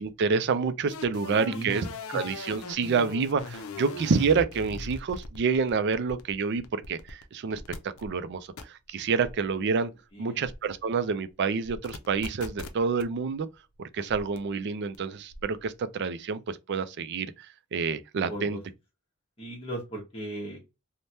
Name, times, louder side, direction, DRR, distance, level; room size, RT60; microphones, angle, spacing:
voice 1, 0.0-1.9 2.1-9.9 10.2-13.5 13.9-17.3 17.7-18.6, right 5 dB, 55° right, 0.4 m, -28 dB
sound 1, 0.9-7.2 7.5-8.1 8.6-8.7 9.2-9.5 10.4-10.7 11.6-13.0 14.1-14.4 14.9-15.0 15.3-15.6, left 3 dB, 75° left, 0.5 m, -40 dB
voice 2, 1.2-2.2 10.1-10.5 18.3-18.6 19.4-20.6, right 1 dB, 25° left, 0.8 m, -38 dB
3.3 x 2.1 x 2.7 m
head